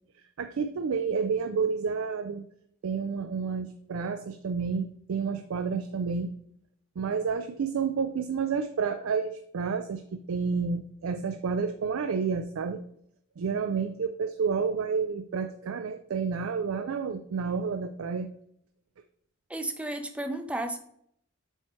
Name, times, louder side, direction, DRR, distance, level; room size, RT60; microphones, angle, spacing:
voice 1, 0.4-2.4 2.8-6.3 7.0-12.8 13.4-18.3, right 5 dB, 75° right, 9 dB, 0.4 m, -30 dB
voice 2, 19.5-20.8, right 1 dB, 5° right, 7 dB, 0.6 m, -33 dB
7.7 x 3.2 x 4.3 m, 0.69 s
head